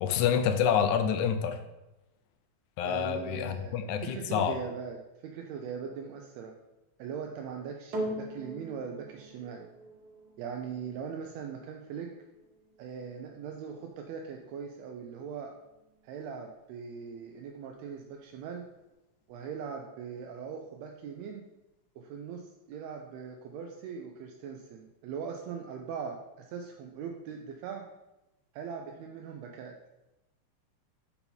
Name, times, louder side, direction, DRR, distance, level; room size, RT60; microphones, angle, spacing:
voice 1, 0.0-1.6 2.8-4.6, left 8 dB, 85° left, 8 dB, 2.1 m, -27 dB
voice 2, 2.8-6.5 7.0-9.7 10.4-12.1 12.8-15.5 16.0-18.6 19.3-21.4 22.0-27.8 28.5-29.7, right 6 dB, 80° right, 2 dB, 1.7 m, -40 dB
sound 1, 7.9-16.5 17.2-17.3, right 1 dB, 60° right, 1.0 m, -43 dB
5.5 x 5.4 x 4.4 m, 0.97 s
omnidirectional pair, 3.4 m